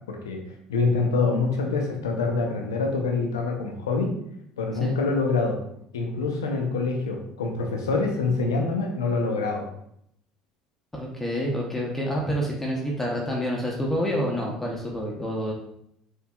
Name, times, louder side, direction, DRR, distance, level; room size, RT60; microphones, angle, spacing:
voice 1, 0.1-0.4 0.7-4.1 4.6-5.6 5.9-9.7, left 3 dB, 85° left, 2 dB, 0.6 m, -25 dB
voice 2, 10.9-15.5, equal, 15° left, -2 dB, 0.8 m, -28 dB
4.4 x 2.7 x 2.3 m, 0.72 s
hypercardioid pair, 65°, 2 cm